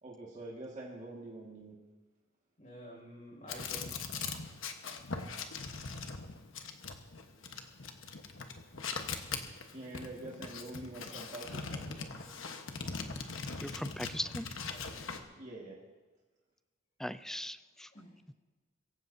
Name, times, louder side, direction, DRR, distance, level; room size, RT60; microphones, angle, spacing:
voice 1, 0.0-1.8 9.7-12.3 15.3-15.8, right 2 dB, 35° right, -4 dB, 1.8 m, -46 dB
voice 2, 2.6-4.0 14.7-15.3 17.9-18.1, equal, 40° left, -2 dB, 5.9 m, -50 dB
sound 1, 3.5-15.2, left 4 dB, 70° left, 1.2 m, -41 dB
voice 3, 13.6-14.5 17.0-17.9, left 1 dB, ahead, 13 dB, 0.3 m, -39 dB
23.0 x 15.5 x 2.7 m, 1.3 s
head